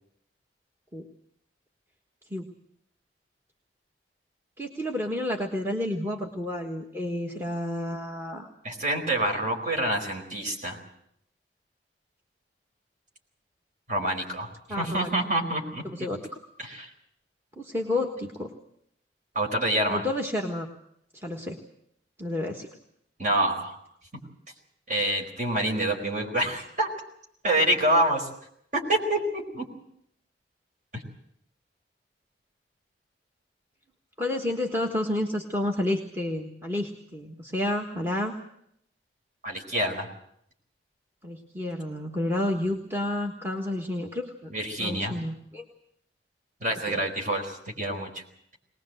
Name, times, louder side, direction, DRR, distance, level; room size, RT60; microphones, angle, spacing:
voice 1, 4.6-8.5 14.7-15.1 15.8-16.2 17.6-18.5 19.9-20.7 21.1-21.6 22.2-22.7 34.2-38.4 41.2-44.5 44.8-45.6 46.9-47.0, left 1 dB, 15° right, 2 dB, 1.5 m, -30 dB
voice 2, 8.6-10.8 13.9-14.5 14.8-15.8 16.6-16.9 19.3-20.0 23.2-23.8 24.9-26.9 27.4-28.3 28.7-29.6 30.9-31.0 39.4-40.1 44.5-45.1 46.6-48.2, right 1 dB, 45° right, 2 dB, 4.6 m, -27 dB
22.0 x 19.5 x 7.8 m, 0.72 s
head